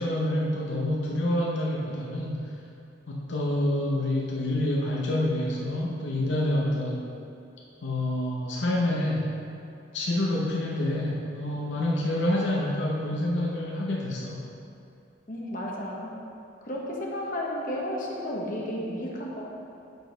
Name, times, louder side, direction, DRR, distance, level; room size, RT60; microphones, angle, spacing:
voice 1, 0.0-2.5 3.1-7.1 7.8-9.3 9.9-14.4, left 1 dB, 70° left, -3 dB, 0.7 m, -27 dB
voice 2, 15.3-16.1 16.6-19.5, left 1 dB, 45° left, -3 dB, 1.0 m, -33 dB
7.0 x 4.0 x 5.3 m, 2.6 s
head